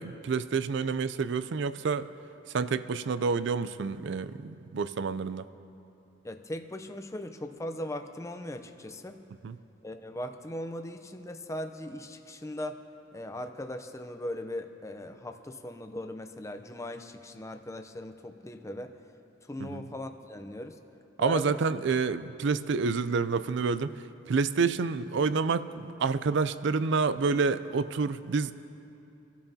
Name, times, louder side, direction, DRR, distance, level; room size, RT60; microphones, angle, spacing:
voice 1, 0.0-2.1 2.5-5.5 9.4-9.6 19.6-19.8 21.2-23.9 24.3-28.5, right 4 dB, 65° right, 14 dB, 0.4 m, -28 dB
voice 2, 6.2-9.2 9.8-12.8 13.1-18.9 19.5-20.8 21.2-21.6, left 1 dB, 15° left, 7 dB, 0.6 m, -39 dB
25.0 x 12.5 x 2.8 m, 2.8 s
head